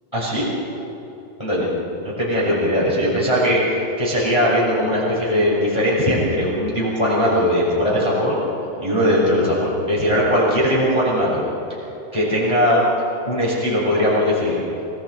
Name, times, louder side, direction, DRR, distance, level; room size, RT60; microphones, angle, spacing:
voice 1, 0.1-0.5 1.4-8.4 8.8-11.4 12.1-12.9 13.3-14.6, equal, 5° left, -6 dB, 5.4 m, -19 dB
28.5 x 20.0 x 4.7 m, 2.9 s
omnidirectional pair, 5.0 m